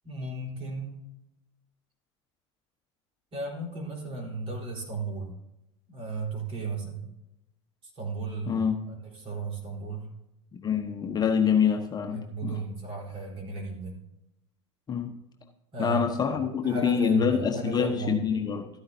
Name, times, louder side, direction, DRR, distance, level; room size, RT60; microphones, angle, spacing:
voice 1, 0.0-1.0 3.3-5.4 5.9-7.1 7.8-10.1 12.0-14.0 15.7-18.2, right 3 dB, 40° right, -1 dB, 4.1 m, -35 dB
voice 2, 8.5-8.8 10.6-12.6 14.9-15.2 15.8-18.7, left 7 dB, 25° left, 3 dB, 1.1 m, -26 dB
13.0 x 9.9 x 2.8 m, 0.89 s
hypercardioid pair, 90°, 15 cm